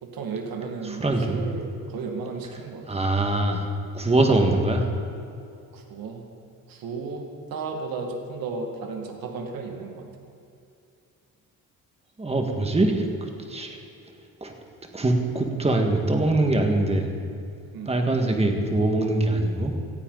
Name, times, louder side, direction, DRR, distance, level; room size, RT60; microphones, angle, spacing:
voice 1, 0.0-2.8 5.7-6.2 6.7-10.1 17.7-18.0, right 4 dB, 75° right, 2 dB, 2.1 m, -34 dB
voice 2, 0.9-1.4 2.9-3.7 3.9-4.9 12.2-13.1 13.5-13.8 14.4-14.5 14.9-17.1 17.9-19.7, right 2 dB, 15° right, 3 dB, 1.8 m, -23 dB
18.5 x 14.0 x 4.1 m, 2.5 s
cardioid pair, 125°, 35 cm